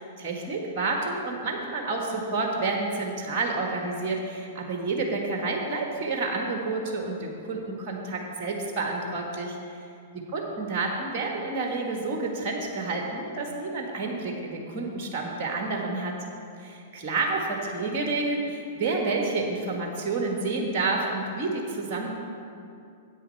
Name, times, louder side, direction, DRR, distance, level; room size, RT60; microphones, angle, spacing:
voice 1, 0.0-9.8 10.3-16.1 16.6-22.1, right 3 dB, 35° right, 1 dB, 1.3 m, -29 dB
9.9 x 8.3 x 4.5 m, 2.6 s
figure-of-eight pair, 105°, 0 cm